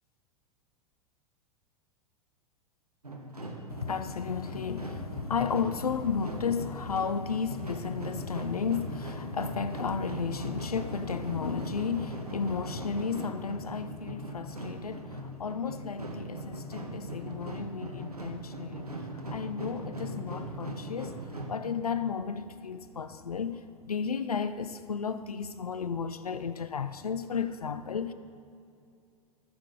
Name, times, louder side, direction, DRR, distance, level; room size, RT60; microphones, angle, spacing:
sound 1, 3.0-21.5, right 1 dB, 85° right, 1.1 m, -40 dB
voice 1, 3.7-18.9 19.3-21.2 21.5-28.1, left 6 dB, 80° left, 0.5 m, -33 dB
14.0 x 7.3 x 4.1 m
figure-of-eight pair, 90°, 19 cm